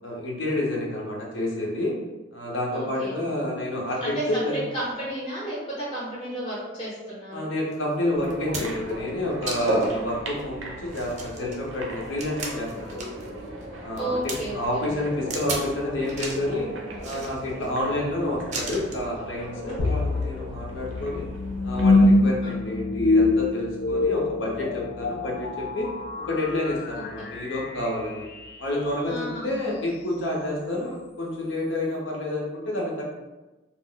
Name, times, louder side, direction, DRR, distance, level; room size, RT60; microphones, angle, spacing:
voice 1, 0.0-2.0 2.3-4.6 7.3-13.4 13.8-16.7 17.0-21.3 21.6-25.9 26.2-28.3 28.6-33.0, left 1 dB, 80° left, -3 dB, 0.8 m, -29 dB
voice 2, 2.7-3.2 4.0-7.5 9.9-10.0 14.0-14.8 19.7-19.8 22.4-22.7 26.9-27.3 29.1-29.7, right 1 dB, 25° left, -7 dB, 0.7 m, -33 dB
sound 1, 7.7-7.8 8.2-8.9 9.5-9.9 10.4-10.5 10.9-13.3 13.6-14.4 15.3-15.7 16.0-16.5 17.0-17.7 18.5-19.0 20.1-20.3, right 3 dB, 35° right, 0.4 m, -35 dB
sound 2, 8.1-22.1, right 1 dB, 90° right, 0.6 m, -36 dB
sound 3, 19.8-28.9, left 2 dB, 55° left, 0.3 m, -25 dB
2.4 x 2.0 x 3.8 m, 1.1 s
head